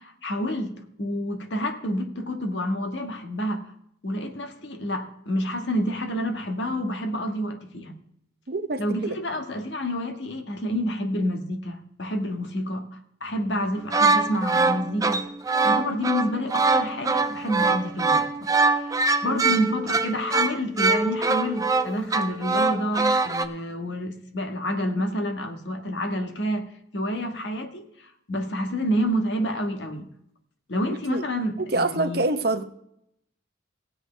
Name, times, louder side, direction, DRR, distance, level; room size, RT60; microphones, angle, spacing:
voice 1, 0.0-3.7 4.0-8.0 8.8-15.3 15.6-26.7 26.9-30.1 30.7-32.3, equal, 70° left, 4 dB, 1.5 m, -29 dB
voice 2, 8.5-9.1 19.3-19.4 31.1-31.2 31.7-32.6, right 2 dB, 55° right, 8 dB, 0.9 m, -26 dB
sound 1, 13.8-23.5, right 3 dB, 20° right, 0.5 m, -23 dB
18.5 x 7.8 x 3.4 m, 0.73 s
head